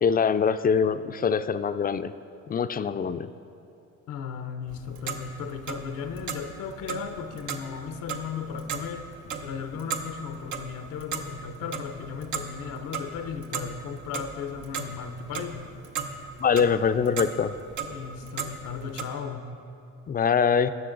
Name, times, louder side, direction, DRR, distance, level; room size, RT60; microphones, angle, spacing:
voice 1, 0.0-2.1 2.5-3.3 16.4-17.5 20.1-20.7, left 6 dB, 30° left, 12 dB, 0.4 m, -23 dB
voice 2, 4.1-9.1 9.4-15.8 17.9-19.5, left 6 dB, 90° left, 8 dB, 0.7 m, -36 dB
Clock, 4.7-19.0, right 6 dB, 75° right, 0.9 m, -37 dB
19.0 x 6.5 x 3.8 m, 2.7 s
cardioid pair, 90°, 30 cm